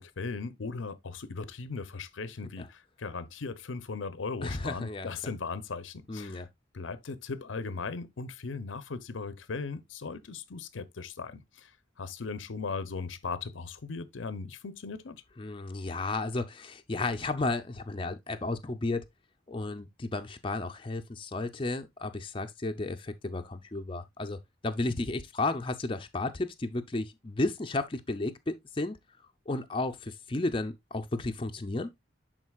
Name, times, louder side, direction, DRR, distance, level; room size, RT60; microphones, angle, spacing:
voice 1, 0.0-6.5 6.7-11.7 12.0-15.2, left 4 dB, 85° left, 0.7 m, -38 dB
voice 2, 4.4-5.1 6.1-6.5 15.4-19.1 19.5-29.0 29.5-31.9, left 2 dB, 25° left, 0.6 m, -33 dB
11.0 x 3.9 x 2.3 m
head